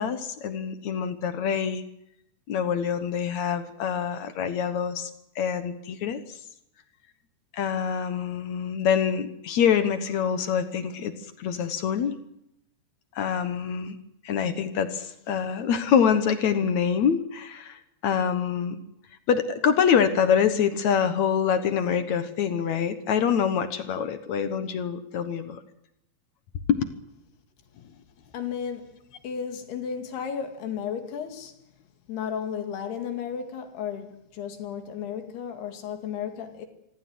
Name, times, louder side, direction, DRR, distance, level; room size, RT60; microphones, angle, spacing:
voice 1, 0.0-1.8 2.5-5.1 5.4-6.2 7.5-12.2 13.2-14.0 14.2-18.8 19.3-25.6 26.7-26.8, left 7 dB, 60° left, 2.0 m, -25 dB
voice 2, 28.3-29.0 29.2-31.5 32.1-36.7, left 7 dB, 80° left, 4.2 m, -33 dB
25.5 x 16.0 x 9.6 m
omnidirectional pair, 4.6 m